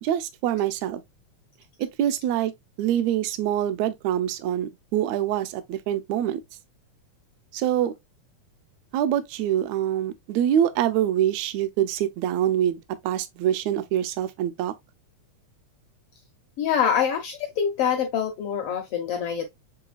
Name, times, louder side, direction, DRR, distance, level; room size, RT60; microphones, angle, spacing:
voice 1, 0.0-1.0 1.8-2.5 2.8-6.4 7.5-7.9 8.9-14.7, right 11 dB, 75° right, 1.8 m, -25 dB
voice 2, 16.6-19.5, left 8 dB, 80° left, 1.3 m, -25 dB
6.8 x 3.2 x 2.3 m
omnidirectional pair, 3.4 m